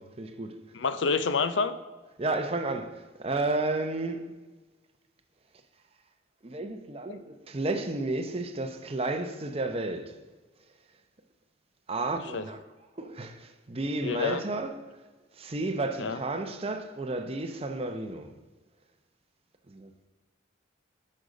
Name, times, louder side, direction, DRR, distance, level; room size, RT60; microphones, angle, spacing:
voice 1, 0.0-0.6 2.2-4.3 6.4-10.2 11.9-12.6 13.0-14.9 15.4-18.3 19.7-19.9, right 2 dB, 30° right, 0.7 m, -32 dB
voice 2, 0.7-1.8 7.1-7.2 12.3-12.4 14.0-14.4 16.0-16.2, left 4 dB, 80° left, 0.6 m, -28 dB
8.7 x 6.6 x 5.1 m
head